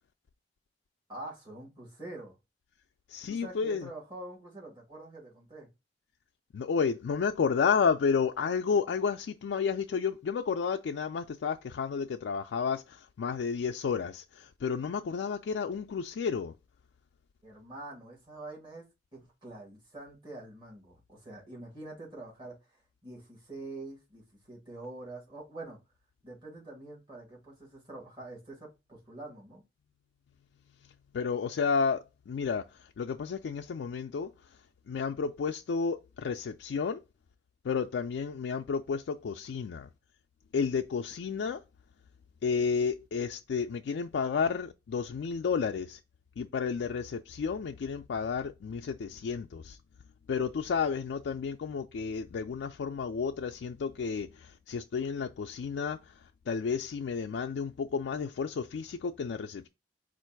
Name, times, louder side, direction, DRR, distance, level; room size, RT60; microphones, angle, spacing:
voice 1, 1.1-2.4 3.3-5.7 17.4-18.8 19.1-25.8 26.2-29.6, right 2 dB, 25° right, 2.1 m, -45 dB
voice 2, 3.1-3.9 6.5-16.5 31.1-34.3 34.9-37.0 37.6-39.9 40.5-41.6 42.4-46.0 46.4-49.8 50.3-59.7, left 6 dB, 85° left, 0.3 m, -31 dB
4.5 x 2.5 x 4.5 m
head